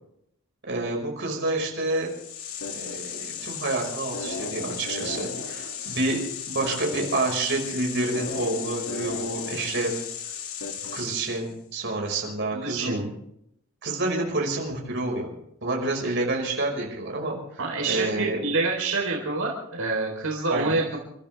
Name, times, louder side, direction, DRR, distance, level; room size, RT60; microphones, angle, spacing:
voice 1, 0.6-2.1 2.7-6.2 6.5-10.0 10.9-13.0 13.8-15.3 15.6-17.6 17.9-18.4 20.5-20.7, right 2 dB, 55° right, 0 dB, 5.5 m, -28 dB
sound 1, 1.9-11.5, left 6 dB, 75° left, 2.5 m, -35 dB
voice 2, 12.5-13.1 17.6-21.0, right 3 dB, 75° right, -1 dB, 4.1 m, -27 dB
30.0 x 13.5 x 3.5 m, 0.75 s
head